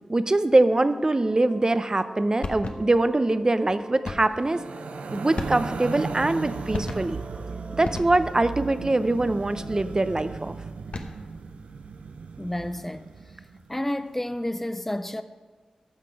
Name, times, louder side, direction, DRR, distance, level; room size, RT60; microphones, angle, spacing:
voice 1, 0.1-4.6 5.1-7.2 7.7-10.6, right 2 dB, 30° right, 0.6 m, -23 dB
sound 1, 0.9-10.4, right 1 dB, 50° right, 1.2 m, -44 dB
sound 2, 2.4-3.1 4.0-4.5 5.3-6.0 6.7-7.3 7.8-8.5 10.7-11.4, left 3 dB, 65° left, 0.9 m, -35 dB
sound 3, 4.4-13.7, right 4 dB, 80° right, 0.5 m, -37 dB
voice 2, 12.4-13.1 13.7-15.2, left 1 dB, 10° left, 0.5 m, -30 dB
14.5 x 5.9 x 4.6 m
cardioid pair, 45°, 2 cm